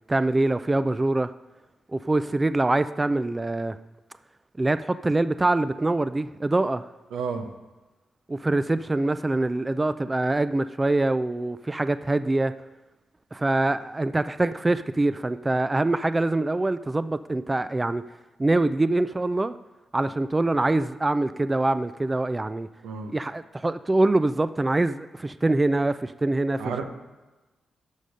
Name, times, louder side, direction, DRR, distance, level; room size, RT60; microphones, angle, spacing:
voice 1, 0.1-1.3 1.9-3.8 4.6-6.8 8.3-12.5 13.3-18.0 18.4-19.5 19.9-22.7 23.1-26.8, right 2 dB, 25° right, 13 dB, 0.4 m, -24 dB
voice 2, 7.1-7.5 22.8-23.1 26.6-26.8, right 5 dB, 85° right, 5 dB, 0.9 m, -31 dB
13.0 x 5.0 x 5.5 m, 1.2 s
supercardioid pair, 45°, 0 cm